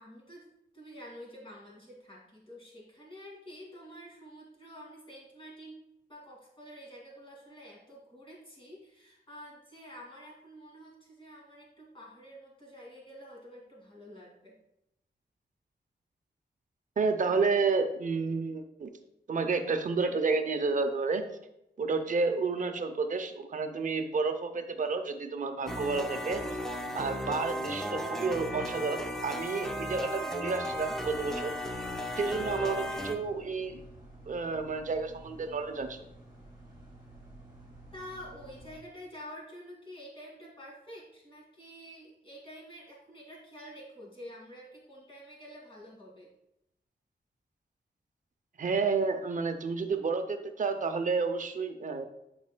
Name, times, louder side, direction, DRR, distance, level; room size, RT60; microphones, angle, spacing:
voice 1, 0.0-5.8 6.1-14.5 37.9-46.3, equal, 30° left, -4 dB, 2.2 m, -48 dB
voice 2, 17.0-18.9 19.3-21.3 21.8-26.4 26.9-31.5 32.2-33.8 34.3-36.0 48.6-52.1, right 4 dB, 45° right, 7 dB, 0.6 m, -30 dB
sound 1, 25.7-33.1, equal, 5° left, 0.6 m, -35 dB
sound 2, 30.7-38.8, right 1 dB, 25° right, 1.5 m, -52 dB
10.5 x 5.2 x 2.2 m, 0.86 s
wide cardioid pair, 180°, 18 cm